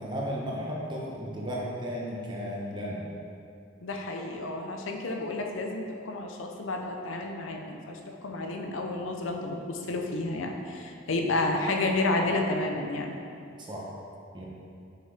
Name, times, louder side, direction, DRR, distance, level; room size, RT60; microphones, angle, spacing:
voice 1, 0.0-3.0 13.6-13.8 14.3-14.4, equal, 25° right, -4 dB, 1.0 m, -34 dB
voice 2, 3.8-13.2, left 2 dB, 80° left, 2 dB, 0.6 m, -31 dB
5.8 x 5.7 x 3.4 m, 2.5 s
head